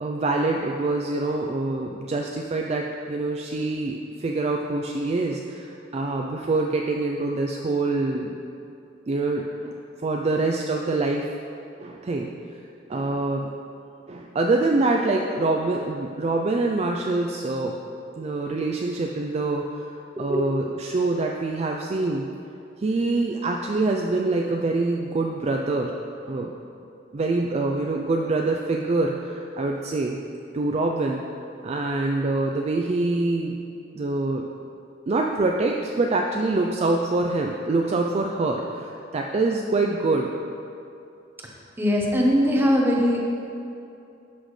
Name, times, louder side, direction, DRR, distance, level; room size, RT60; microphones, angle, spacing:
voice 1, 0.0-8.4 9.1-11.3 11.8-12.3 12.9-13.5 14.1-17.8 18.2-19.9 20.2-22.3 22.8-25.9 26.2-26.6 27.1-30.2 30.5-31.3 31.6-33.6 33.9-34.5 35.1-40.3, right 2 dB, 35° right, 1 dB, 0.4 m, -25 dB
voice 2, 41.8-43.2, equal, 10° right, -2 dB, 1.0 m, -20 dB
11.5 x 6.2 x 3.2 m, 2.6 s
head